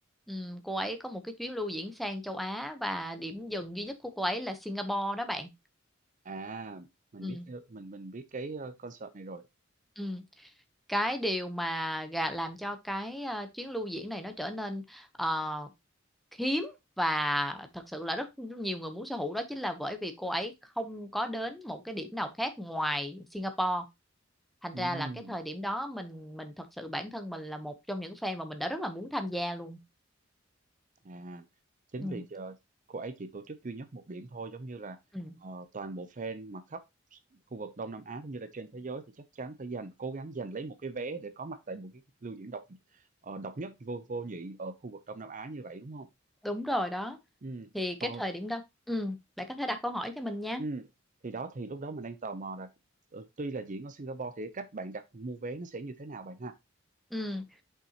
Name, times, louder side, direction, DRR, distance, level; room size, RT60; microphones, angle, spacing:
voice 1, 0.3-5.5 7.2-7.5 10.0-10.5 10.9-15.7 16.4-23.8 24.6-29.8 32.0-32.2 35.1-35.3 46.4-47.2 47.7-50.6 57.1-57.4, equal, ahead, 0.9 m, -34 dB
voice 2, 6.2-6.9 7.1-9.4 24.7-25.4 31.0-31.5 31.9-32.6 32.9-35.0 35.4-36.8 37.1-37.2 37.5-46.1 47.4-47.7 48.0-48.2 50.6-50.9 51.2-52.7 53.1-56.5, right 3 dB, 40° right, 0.6 m, -40 dB
6.7 x 5.7 x 2.9 m
head